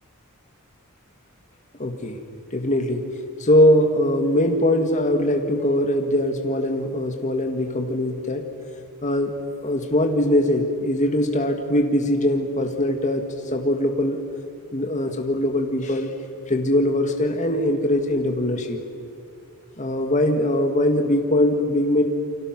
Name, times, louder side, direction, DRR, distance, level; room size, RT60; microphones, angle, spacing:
voice 1, 1.8-2.2 2.5-3.1 3.4-8.5 9.0-9.4 9.6-14.2 14.7-16.1 16.5-18.8 19.8-22.0, left 1 dB, 35° left, 3 dB, 1.9 m, -21 dB
29.0 x 25.0 x 6.1 m, 2.3 s
head